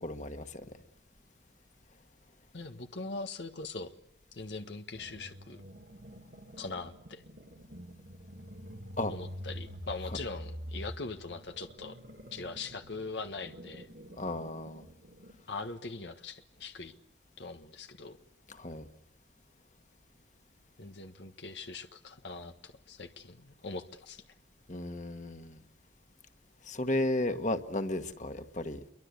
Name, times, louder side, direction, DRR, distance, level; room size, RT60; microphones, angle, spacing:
voice 1, 0.0-0.6 9.0-9.1 14.2-14.8 18.5-18.8 24.7-25.6 26.7-28.8, left 1 dB, 45° left, 8 dB, 1.6 m, -34 dB
voice 2, 2.5-3.9 4.3-5.6 6.6-7.2 9.1-12.0 12.3-13.9 15.5-16.9 17.4-18.2 20.8-24.2, left 3 dB, 85° left, 6 dB, 1.4 m, -41 dB
sound 1, 4.9-15.4, equal, 60° right, 2.4 m, -46 dB
28.5 x 23.5 x 8.3 m, 0.80 s
head